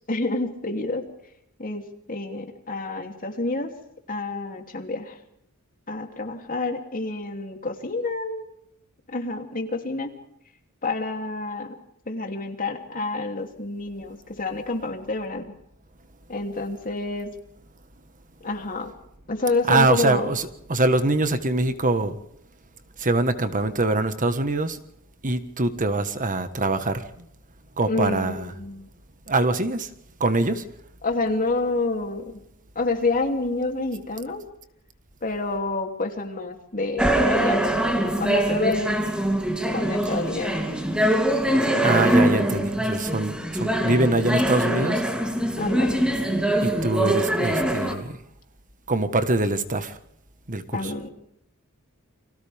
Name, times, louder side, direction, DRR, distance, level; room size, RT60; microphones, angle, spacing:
voice 1, 0.1-1.1 1.6-1.8 2.1-3.7 4.1-5.2 5.9-8.5 9.1-10.1 10.8-11.7 12.1-15.5 16.3-17.3 18.4-18.9 19.3-20.3 27.9-28.9 31.0-32.4 32.7-34.4 35.2-37.6 38.2-39.0 39.7-40.7 45.6-46.0 50.7-51.1, left 3 dB, 40° left, 4 dB, 3.1 m, -28 dB
voice 2, 19.7-22.2 23.0-24.8 25.2-27.3 27.8-28.5 29.3-29.9 30.2-30.6 41.8-45.0 46.6-48.2 48.9-50.0 50.5-50.9, right 2 dB, 40° right, 9 dB, 1.5 m, -23 dB
sound 1, 37.0-47.9, right 1 dB, 5° right, 3.0 m, -23 dB
29.5 x 25.0 x 3.6 m, 0.74 s
head